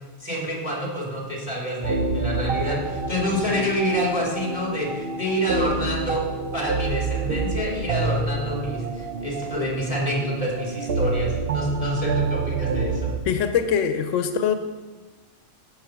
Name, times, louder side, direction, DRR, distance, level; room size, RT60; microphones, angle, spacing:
voice 1, 0.2-6.2 6.5-13.1, equal, 30° left, -2 dB, 2.7 m, -27 dB
sound 1, 1.8-13.2, right 3 dB, 60° right, 0.9 m, -28 dB
voice 2, 13.2-14.5, left 7 dB, 90° left, 9 dB, 1.0 m, -22 dB
11.5 x 7.2 x 5.8 m, 1.3 s
omnidirectional pair, 1.2 m